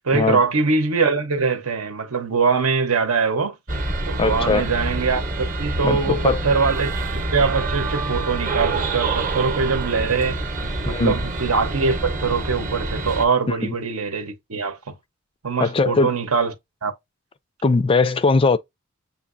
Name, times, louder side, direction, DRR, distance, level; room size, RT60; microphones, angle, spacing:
voice 1, 0.0-3.5 4.1-10.4 10.9-15.0 15.4-16.5 16.8-16.9, right 4 dB, 80° right, 1.0 m, -22 dB
sound 1, 3.7-13.3, right 2 dB, 35° right, 0.8 m, -26 dB
voice 2, 4.2-4.7 5.8-6.4 10.9-11.2 13.5-13.7 15.6-16.1 17.6-18.6, left 3 dB, 25° left, 0.3 m, -20 dB
7.0 x 2.7 x 2.6 m
head